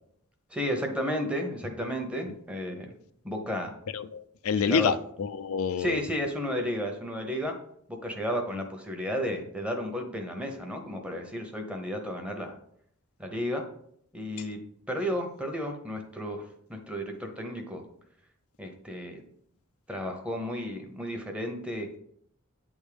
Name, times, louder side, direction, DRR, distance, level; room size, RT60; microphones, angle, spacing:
voice 1, 0.5-2.9 3.2-3.7 4.5-4.9 5.8-7.6 7.9-12.5 13.2-13.6 14.1-14.6 14.9-17.8 18.6-19.2 19.9-21.9, equal, 5° right, 4 dB, 0.9 m, -33 dB
voice 2, 3.9-6.0, left 6 dB, 80° left, 12 dB, 0.4 m, -28 dB
8.9 x 3.6 x 5.0 m, 0.69 s
head